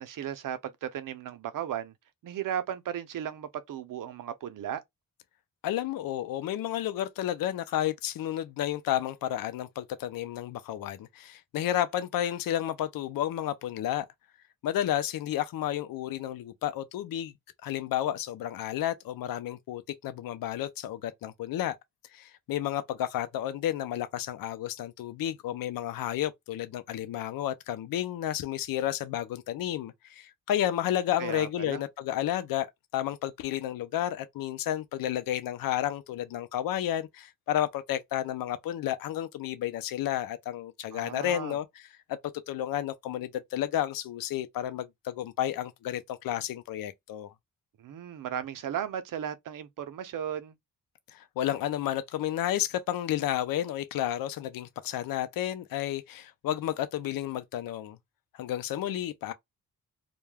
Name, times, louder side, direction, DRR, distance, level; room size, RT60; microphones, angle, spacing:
voice 1, 0.0-1.9 2.2-4.8 31.2-31.8 40.9-41.6 47.8-50.5, right 9 dB, 65° right, 0.6 m, -35 dB
voice 2, 5.6-14.1 14.6-17.3 17.6-21.8 22.1-32.7 32.9-41.9 42.5-47.3 51.1-58.0 58.3-59.3, left 12 dB, 70° left, 0.5 m, -31 dB
2.2 x 2.1 x 3.2 m
cardioid pair, 80°, 35 cm